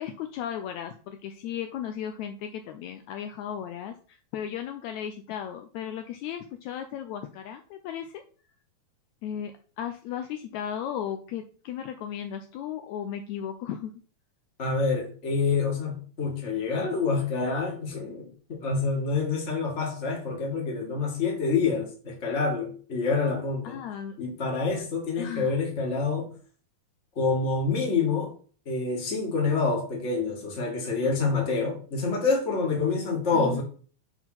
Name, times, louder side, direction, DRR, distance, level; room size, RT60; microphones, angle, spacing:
voice 1, 0.0-8.2 9.2-13.9 23.6-24.2 25.2-25.6 33.3-33.6, left 9 dB, 85° left, 1.7 m, -35 dB
voice 2, 14.6-23.8 24.2-26.3 27.1-28.3 28.6-33.6, left 4 dB, 25° left, 1.7 m, -27 dB
7.0 x 3.8 x 5.8 m
omnidirectional pair, 3.8 m